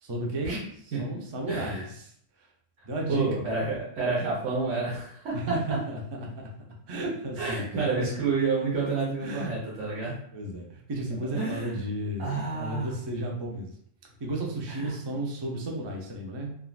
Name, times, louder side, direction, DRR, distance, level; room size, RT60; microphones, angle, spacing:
voice 1, 0.0-2.1 2.4-2.5 2.8-3.3 5.3-6.5 6.9-8.1 9.2-9.6 10.3-13.8 14.2-16.6, right 1 dB, 45° right, -1 dB, 0.3 m, -33 dB
voice 2, 1.5-1.9 3.1-5.8 7.4-10.2 11.3-11.8 12.2-12.9 14.7-15.0, right 4 dB, 75° right, -7 dB, 1.2 m, -29 dB
3.6 x 2.3 x 2.3 m, 0.65 s
omnidirectional pair, 1.3 m